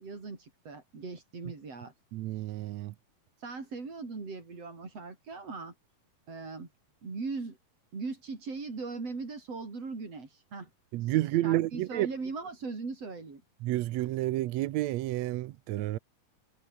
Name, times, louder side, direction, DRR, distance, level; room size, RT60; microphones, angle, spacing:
voice 1, 0.0-1.9 3.4-5.7 6.3-6.7 7.0-7.6 7.9-10.7 11.0-13.4, right 4 dB, 50° right, 6.2 m, -39 dB
voice 2, 2.1-2.9 10.9-12.1 13.6-16.0, right 16 dB, 75° right, 1.8 m, -30 dB
omnidirectional pair, 3.7 m